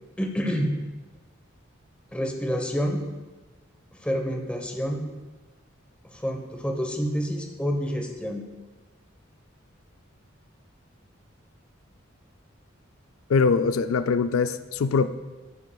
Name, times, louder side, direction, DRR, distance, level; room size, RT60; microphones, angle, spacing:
voice 1, 0.2-0.7 2.1-3.0 3.9-5.0 6.0-8.4, equal, 5° left, 1 dB, 1.0 m, -28 dB
voice 2, 13.3-15.1, left 5 dB, 85° left, 11 dB, 0.4 m, -22 dB
13.0 x 9.3 x 2.3 m, 1.2 s
head